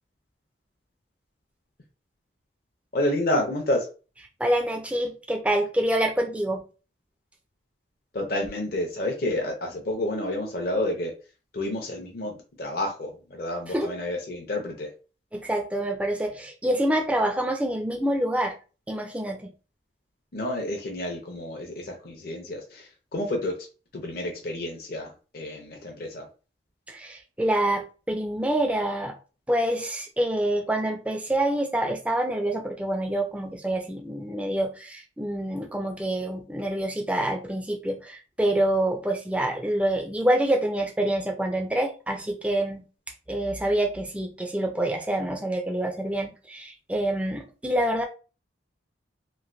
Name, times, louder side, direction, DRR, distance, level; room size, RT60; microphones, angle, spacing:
voice 1, 2.9-3.9 8.1-11.1 11.5-14.9 20.3-23.6 23.9-26.3, left 1 dB, 50° left, 0.6 m, -29 dB
voice 2, 4.4-6.6 13.7-13.9 15.3-18.6 18.9-19.5 26.9-29.1 29.5-42.9 43.3-48.0, right 1 dB, 5° right, 0.4 m, -26 dB
3.1 x 2.5 x 2.5 m
head